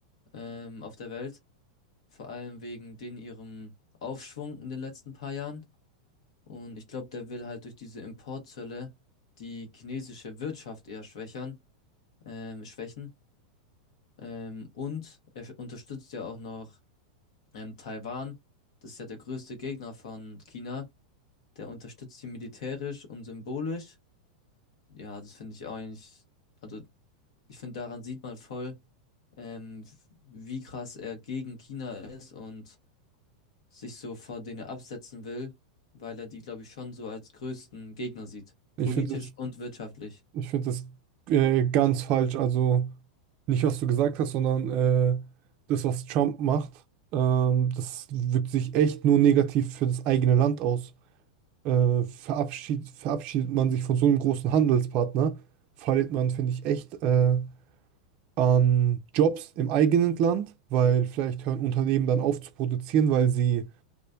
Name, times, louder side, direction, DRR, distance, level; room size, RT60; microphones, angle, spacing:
voice 1, 0.3-1.4 2.1-3.7 4.0-5.6 6.5-8.9 9.4-11.6 12.2-13.1 14.2-16.8 17.5-18.3 18.8-20.9 21.5-23.9 24.9-26.2 26.6-26.8 27.5-28.8 29.4-29.9 30.2-32.8 33.7-35.5 35.9-38.5 38.8-40.2, left 4 dB, 75° left, 1.1 m, -39 dB
voice 2, 38.8-39.2 40.3-40.9 41.3-42.9 43.5-45.2 45.7-46.7 47.1-50.9 51.6-55.4 55.8-57.5 58.4-63.7, right 9 dB, 45° right, 0.3 m, -24 dB
2.4 x 2.1 x 2.5 m
hypercardioid pair, 120°, 3 cm